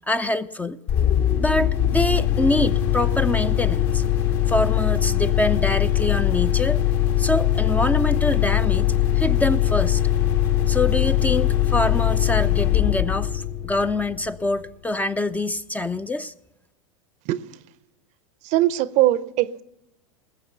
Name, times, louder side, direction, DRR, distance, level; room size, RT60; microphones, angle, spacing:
voice 1, 0.1-0.8 1.3-4.0 4.5-6.8 7.2-10.0 10.7-16.3, left 1 dB, 10° left, 0.5 m, -25 dB
sound 1, 0.9-14.4, left 11 dB, 55° left, 1.9 m, -21 dB
voice 2, 18.4-19.6, right 14 dB, 45° right, 0.7 m, -21 dB
20.5 x 7.1 x 7.0 m
hypercardioid pair, 90°, 17 cm